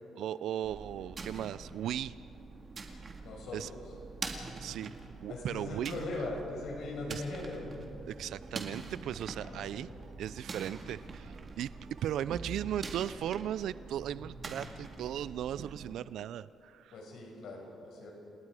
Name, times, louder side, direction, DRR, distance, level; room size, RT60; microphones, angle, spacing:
voice 1, 0.1-2.1 3.5-3.7 4.6-4.9 5.2-6.0 7.1-7.2 8.1-9.9 10.2-11.7 12.0-16.9, right 11 dB, 75° right, 16 dB, 0.4 m, -37 dB
sound 1, 0.6-15.9, right 3 dB, 35° right, 2.3 m, -45 dB
voice 2, 3.2-3.8 5.3-7.7 9.3-9.9 16.9-18.1, left 2 dB, 70° left, 0 dB, 5.9 m, -40 dB
sound 2, 8.1-13.1, right 3 dB, 55° right, 2.1 m, -55 dB
30.0 x 18.5 x 4.9 m, 2.7 s
cardioid pair, 120°, 0 cm